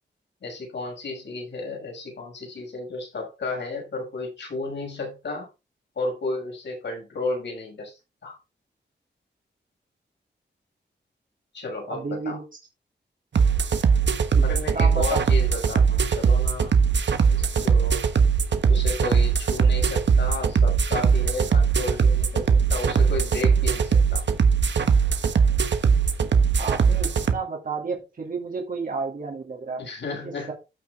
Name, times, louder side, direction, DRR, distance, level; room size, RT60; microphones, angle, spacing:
voice 1, 0.4-5.5 6.0-8.4 11.5-12.4 14.4-16.8 17.3-18.0 18.7-24.2 29.8-30.5, left 2 dB, 70° left, 0 dB, 6.1 m, -33 dB
voice 2, 11.9-12.4 14.3-14.4 14.7-15.2 26.6-29.8 30.2-30.5, right 4 dB, 45° right, -1 dB, 3.0 m, -31 dB
sound 1, 13.3-27.3, right 6 dB, 70° right, 1.3 m, -20 dB
14.0 x 6.2 x 3.8 m, 0.27 s
wide cardioid pair, 150°, 19 cm